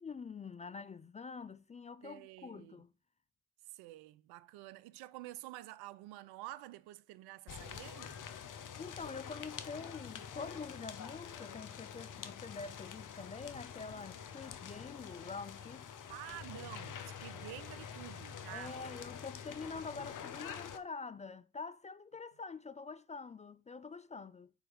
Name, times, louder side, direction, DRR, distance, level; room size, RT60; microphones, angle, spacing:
voice 1, 0.0-2.9 8.8-15.9 18.5-24.5, left 4 dB, 20° left, 0.3 m, -46 dB
voice 2, 2.0-2.8 3.7-8.2 16.1-18.8, right 16 dB, 80° right, 0.5 m, -49 dB
sound 1, 7.5-20.8, left 7 dB, 55° left, 0.9 m, -47 dB
4.6 x 4.5 x 5.2 m
hypercardioid pair, 50°, 38 cm